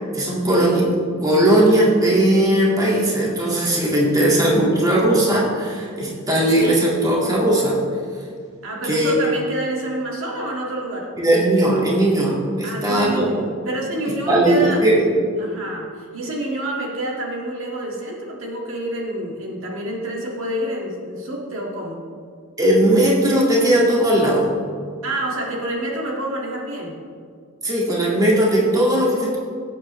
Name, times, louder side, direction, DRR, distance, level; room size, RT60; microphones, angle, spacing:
voice 1, 0.1-1.0 1.2-7.8 8.9-9.2 11.2-13.3 14.3-15.1 22.6-24.5 27.6-29.4, right 1 dB, 15° right, -4 dB, 1.9 m, -18 dB
voice 2, 8.6-11.1 12.6-14.8 15.4-22.0 25.0-26.9, right 1 dB, 60° right, -2 dB, 1.9 m, -28 dB
17.5 x 8.1 x 3.2 m, 2.1 s
head